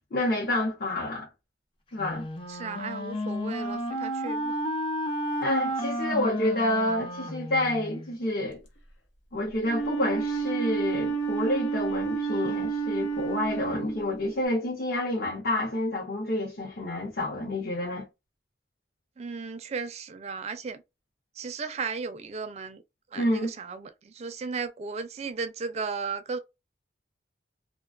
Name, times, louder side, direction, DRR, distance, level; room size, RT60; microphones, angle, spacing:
voice 1, 0.1-1.3 1.9-2.3 5.4-8.6 9.3-18.1 23.2-23.5, left 1 dB, 55° left, 0.8 m, -28 dB
Wind instrument woodwind instrument, 2.0-8.1, equal, 30° left, 0.5 m, -32 dB
voice 2, 2.5-4.6 19.2-20.8 21.4-22.8 23.1-26.4, right 4 dB, 35° right, 0.4 m, -35 dB
Wind instrument woodwind instrument 2, 9.6-14.4, right 6 dB, 90° left, 0.9 m, -30 dB
2.4 x 2.2 x 2.3 m
head